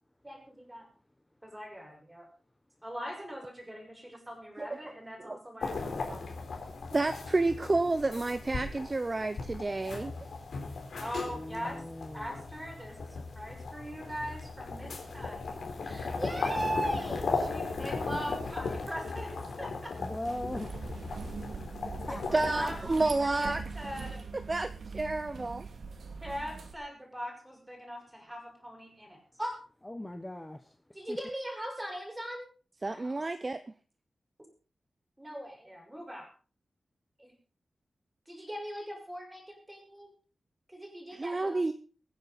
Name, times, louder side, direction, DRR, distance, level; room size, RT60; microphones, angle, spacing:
voice 1, 0.2-0.9 1.4-2.3 2.8-6.2 11.0-11.8 12.1-15.5 15.8-19.9 22.1-24.2 26.2-29.6 30.9-32.4 32.9-33.2 35.2-36.3 37.2-37.3 38.3-40.1 40.7-41.6, equal, 10° right, 1 dB, 5.5 m, -40 dB
sound 1, 5.6-22.8, left 4 dB, 80° left, 3.8 m, -37 dB
voice 2, 6.9-10.3 22.3-23.6 24.5-25.7 32.8-33.6 41.1-41.7, right 2 dB, 30° right, 11 dB, 0.7 m, -30 dB
voice 3, 11.3-12.4 20.0-20.7 22.1-22.8 29.8-30.7 31.1-31.2, left 1 dB, 10° left, 7 dB, 0.9 m, -40 dB
sound 2, 20.2-26.7, right 4 dB, 80° right, 2.3 m, -42 dB
23.0 x 9.8 x 4.1 m, 0.38 s
wide cardioid pair, 140°, 0 cm